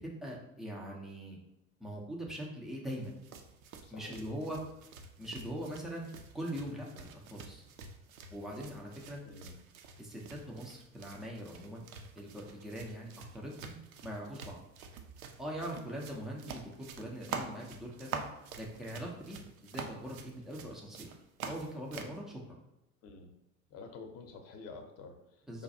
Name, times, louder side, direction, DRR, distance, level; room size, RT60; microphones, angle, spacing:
voice 1, 0.0-1.4 1.8-3.2 3.9-4.6 5.2-6.1 6.3-7.6 8.3-9.2 10.0-13.7 14.0-14.6 15.4-18.2 18.6-19.4 19.6-21.1 21.5-22.6 25.5-25.6, equal, ahead, -3 dB, 0.3 m, -42 dB
sound 1, 3.0-22.2, right 5 dB, 70° right, 0.5 m, -47 dB
voice 2, 3.8-4.3 9.2-9.6 23.0-23.4 23.7-25.6, left 4 dB, 35° left, 5 dB, 0.6 m, -49 dB
5.0 x 2.2 x 2.6 m, 0.90 s
figure-of-eight pair, 75°, 44 cm